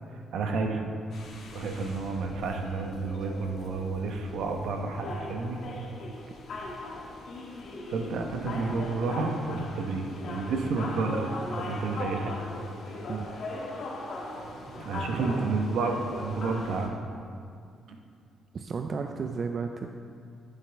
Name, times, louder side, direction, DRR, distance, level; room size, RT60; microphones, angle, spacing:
voice 1, 0.1-0.8 1.5-5.6 7.9-12.4 14.4-16.9 17.9-18.0, right 3 dB, 75° right, 3 dB, 1.1 m, -31 dB
sound 1, 1.1-16.9, left 2 dB, 60° left, 1.5 m, -39 dB
voice 2, 15.1-15.5 18.5-19.9, right 5 dB, 45° right, 5 dB, 0.5 m, -33 dB
13.0 x 7.2 x 3.5 m, 2.3 s
cardioid pair, 90°, 0 cm